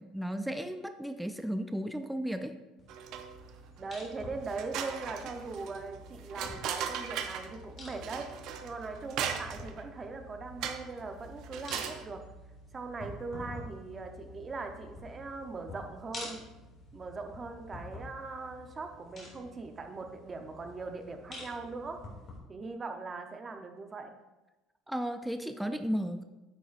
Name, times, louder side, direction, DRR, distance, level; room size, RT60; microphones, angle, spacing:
voice 1, 0.0-2.6 24.9-26.2, equal, ahead, 8 dB, 0.4 m, -34 dB
sound 1, 2.8-22.4, left 2 dB, 30° left, 2.5 m, -49 dB
sound 2, 2.9-3.5 3.9-4.0 4.4-7.6 8.0-9.8 10.6-11.0 11.4-12.0, right 8 dB, 60° right, 0.8 m, -38 dB
voice 2, 3.8-8.3 8.6-12.2 12.7-16.4 16.9-22.0 22.5-24.1, right 3 dB, 25° right, 5 dB, 0.9 m, -40 dB
9.3 x 9.1 x 2.6 m, 1.1 s
cardioid pair, 135°, 0 cm